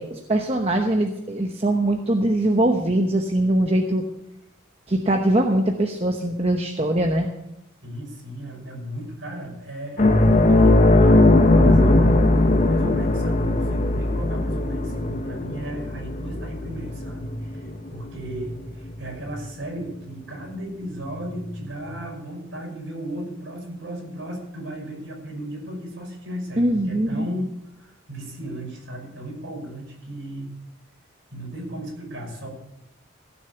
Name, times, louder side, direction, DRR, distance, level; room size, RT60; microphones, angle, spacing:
voice 1, 0.0-4.0 4.9-7.3 26.6-27.3, right 1 dB, 30° right, 2 dB, 0.9 m, -22 dB
voice 2, 7.8-30.6 31.3-32.5, right 1 dB, 60° right, -1 dB, 5.9 m, -35 dB
sound 1, 10.0-18.9 19.3-19.4 21.5-21.6, left 2 dB, 35° left, 0.9 m, -19 dB
15.5 x 6.8 x 6.8 m, 0.85 s
head